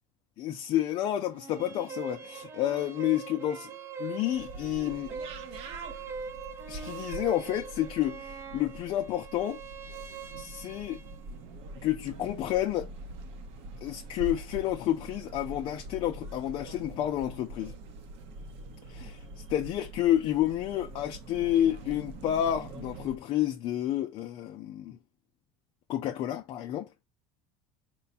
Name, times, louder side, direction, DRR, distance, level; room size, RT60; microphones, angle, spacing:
voice 1, 0.4-3.7 4.0-5.1 6.7-9.6 10.4-11.0 11.8-12.9 13.8-17.7 18.9-19.2 19.5-25.0 25.9-26.9, left 12 dB, 40° left, 0.4 m, -30 dB
sound 1, 1.3-11.2, right 5 dB, 20° right, 0.4 m, -42 dB
sound 2, 4.3-23.2, right 2 dB, 55° right, 0.8 m, -44 dB
4.5 x 2.2 x 4.1 m
cardioid pair, 155°, 12 cm